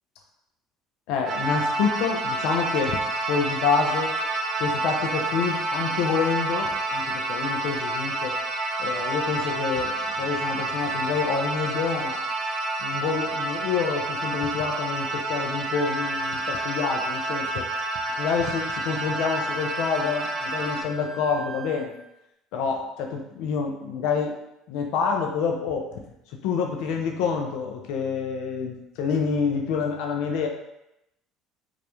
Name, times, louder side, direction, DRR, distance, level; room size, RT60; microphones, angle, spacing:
voice 1, 1.1-3.0 3.3-4.1 4.6-8.4 8.8-12.2 12.8-17.7 18.2-21.9 22.5-24.4 24.7-25.9 26.4-30.5, left 5 dB, 75° left, 2 dB, 0.3 m, -27 dB
sound 1, 1.3-20.8, right 2 dB, 55° right, 0.4 m, -29 dB
Wind instrument woodwind instrument, 15.7-21.9, right 1 dB, 10° right, 0.6 m, -37 dB
2.3 x 2.0 x 2.8 m, 0.85 s
hypercardioid pair, 75°, 0 cm